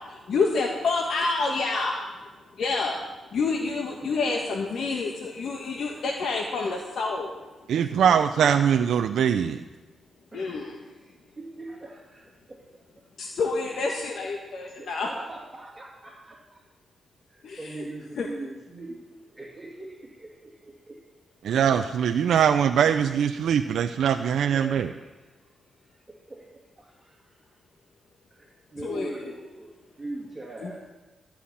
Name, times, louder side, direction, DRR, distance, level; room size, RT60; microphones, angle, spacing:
voice 1, 0.0-2.0 2.6-3.0 3.3-7.3 10.3-10.8 13.2-15.1 17.4-17.9 18.2-18.3 28.8-29.1 30.6-30.7, left 4 dB, 70° left, 1 dB, 1.4 m, -28 dB
voice 2, 7.7-9.6 21.4-24.9, right 8 dB, 85° right, 7 dB, 0.5 m, -22 dB
voice 3, 10.3-12.8 14.7-16.6 17.3-21.0 24.5-25.1 25.4-25.5 26.1-26.5 26.8-27.6 28.3-29.7 30.0-30.9, right 2 dB, 15° right, -2 dB, 2.6 m, -42 dB
13.5 x 5.8 x 8.6 m, 1.2 s
cardioid pair, 90°, 0 cm